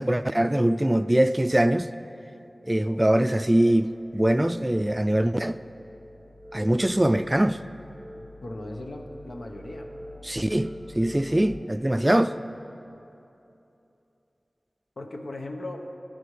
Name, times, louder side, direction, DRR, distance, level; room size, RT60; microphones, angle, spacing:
voice 1, 0.0-1.9 2.7-5.6 6.5-7.6 10.2-12.3, right 1 dB, 20° right, 11 dB, 0.3 m, -22 dB
sound 1, 3.5-11.5, left 1 dB, 5° right, 2.2 m, -45 dB
voice 2, 8.1-9.9 15.0-15.9, left 1 dB, 75° left, 2 dB, 1.1 m, -38 dB
23.0 x 10.0 x 3.3 m, 2.9 s
wide cardioid pair, 50°, 0 cm